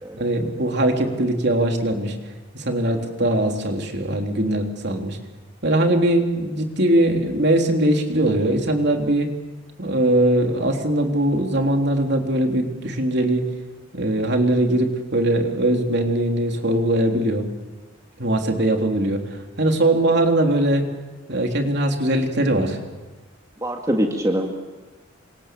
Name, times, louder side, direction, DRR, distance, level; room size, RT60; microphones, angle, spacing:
voice 1, 0.1-2.2 2.5-5.2 5.6-9.3 9.8-13.5 13.9-17.5 18.2-19.2 19.6-20.9 21.3-22.8, right 1 dB, 55° right, 3 dB, 3.5 m, -21 dB
voice 2, 23.6-24.6, equal, 15° right, 2 dB, 2.1 m, -23 dB
28.5 x 26.0 x 7.7 m, 1.2 s
head